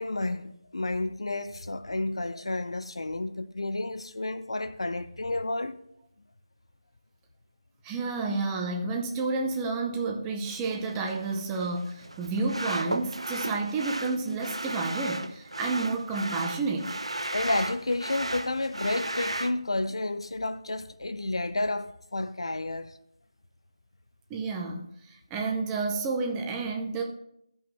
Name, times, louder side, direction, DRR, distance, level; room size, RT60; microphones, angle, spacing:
voice 1, 0.0-5.8 17.3-22.9, left 2 dB, 75° left, 0.5 m, -31 dB
voice 2, 7.8-17.0 24.3-27.0, right 3 dB, 10° right, 0.5 m, -30 dB
sound 1, 10.5-19.5, right 1 dB, 90° right, 0.7 m, -35 dB
14.0 x 5.3 x 3.0 m
figure-of-eight pair, 160°, 3 cm